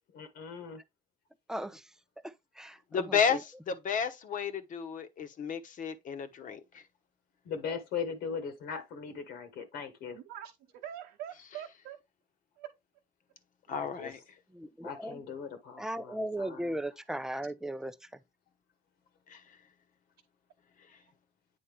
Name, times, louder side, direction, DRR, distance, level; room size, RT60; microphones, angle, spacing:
voice 1, 0.1-0.8 7.4-10.2 13.7-14.1 14.8-16.8, left 6 dB, 75° left, 1.4 m, -39 dB
voice 2, 1.5-1.9 2.2-3.4 14.5-15.2 15.8-18.1, right 1 dB, 5° right, 0.6 m, -37 dB
voice 3, 2.9-6.8 13.7-14.2 19.3-19.4, left 6 dB, 50° left, 1.1 m, -32 dB
voice 4, 10.1-12.0 12.6-12.7 20.9-21.1, right 11 dB, 85° right, 1.0 m, -44 dB
8.8 x 4.1 x 3.4 m
cardioid pair, 110°, 17 cm